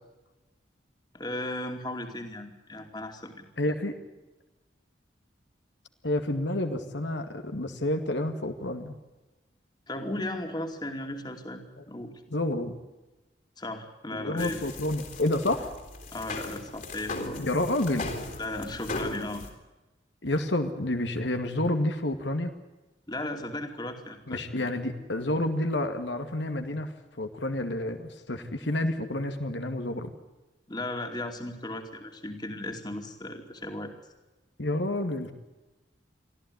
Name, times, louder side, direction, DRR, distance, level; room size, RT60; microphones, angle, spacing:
voice 1, 1.1-3.5 9.9-11.6 11.9-12.1 13.6-14.6 16.1-17.4 18.4-19.5 23.1-24.7 30.7-33.9, left 1 dB, 25° left, 5 dB, 2.7 m, -36 dB
voice 2, 3.6-4.0 6.0-8.9 11.8-11.9 12.3-12.7 14.1-15.7 17.4-18.1 20.2-22.5 24.3-30.1 34.6-35.3, left 1 dB, 80° left, 7 dB, 2.2 m, -29 dB
sound 1, 14.4-19.5, left 2 dB, 45° left, 3.6 m, -38 dB
24.5 x 14.5 x 9.7 m, 1.1 s
head